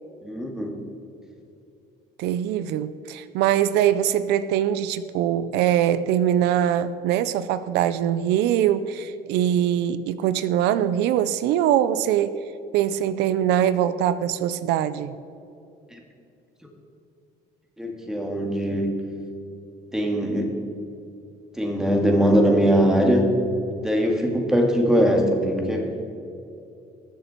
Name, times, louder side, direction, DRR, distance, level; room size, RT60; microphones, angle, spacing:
voice 1, 0.2-0.7 15.9-16.0 17.8-18.9 19.9-20.5 21.6-23.3 23.8-25.9, equal, 5° right, 1 dB, 2.4 m, -21 dB
voice 2, 2.2-12.4 12.7-15.2, right 10 dB, 90° right, 14 dB, 0.5 m, -22 dB
20.0 x 7.0 x 4.5 m, 2.7 s
cardioid pair, 110°, 17 cm